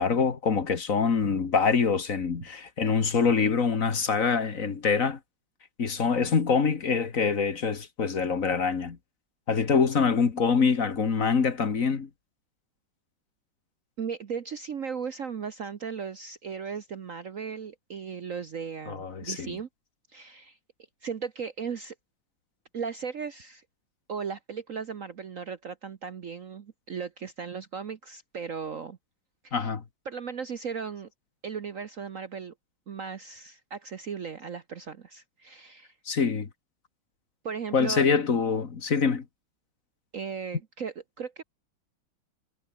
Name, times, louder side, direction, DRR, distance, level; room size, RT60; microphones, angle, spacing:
voice 1, 0.0-5.2 5.8-9.0 9.5-12.1 18.9-19.6 29.5-29.8 36.1-36.5 37.7-39.2, left 5 dB, 45° left, 2.0 m, -25 dB
voice 2, 14.0-19.7 20.1-20.6 21.0-21.9 22.7-23.6 24.1-29.0 29.4-29.7 30.0-31.1 31.4-32.5 32.9-35.9 37.4-38.0 40.1-41.4, right 6 dB, 50° right, 1.2 m, -36 dB
omnidirectional pair, 2.2 m